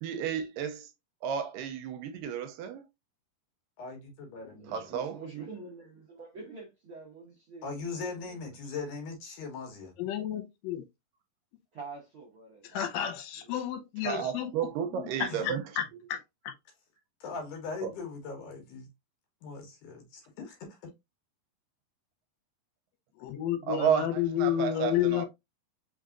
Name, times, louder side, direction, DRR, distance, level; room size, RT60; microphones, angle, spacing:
voice 1, 0.0-0.9 1.2-2.8 4.7-5.2 14.0-15.6 17.8-17.9 23.7-25.2, right 8 dB, 85° right, 2.3 m, -32 dB
voice 2, 3.8-4.9 7.6-9.9 15.3-15.5 17.2-18.9 19.4-20.9, left 4 dB, 70° left, 2.6 m, -40 dB
voice 3, 4.4-8.3 11.7-12.9 13.4-13.6, right 4 dB, 70° right, 1.2 m, -46 dB
voice 4, 10.0-10.4 10.7-10.8 12.7-14.5 15.4-15.8 16.1-16.2 23.2-25.3, left 11 dB, 85° left, 2.6 m, -30 dB
5.4 x 3.6 x 2.4 m
omnidirectional pair, 3.9 m